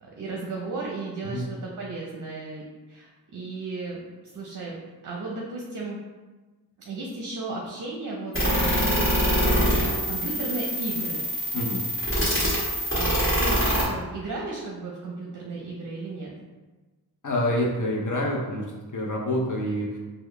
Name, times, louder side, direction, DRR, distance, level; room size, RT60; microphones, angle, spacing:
voice 1, 0.0-2.6 2.9-4.7 5.0-6.0 6.8-9.6 10.1-11.3 12.9-16.3, right 3 dB, 50° right, -2 dB, 0.6 m, -34 dB
sound 1, 8.3-13.9, equal, 30° left, 1.4 m, -24 dB
voice 2, 11.5-11.9 17.2-18.6 18.9-20.0, left 1 dB, 50° left, -2 dB, 0.6 m, -27 dB
3.6 x 2.1 x 3.2 m, 1.2 s
cardioid pair, 50°, 41 cm